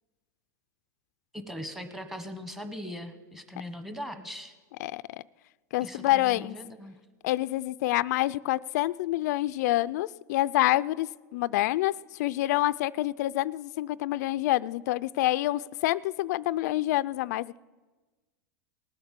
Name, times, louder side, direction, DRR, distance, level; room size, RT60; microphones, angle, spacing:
voice 1, 1.3-4.5 5.8-6.9, equal, 5° right, 9 dB, 1.2 m, -40 dB
voice 2, 5.7-6.6 7.2-17.6, left 16 dB, 65° left, 16 dB, 0.4 m, -27 dB
19.0 x 7.9 x 7.4 m, 1.3 s
supercardioid pair, 130°, 10 cm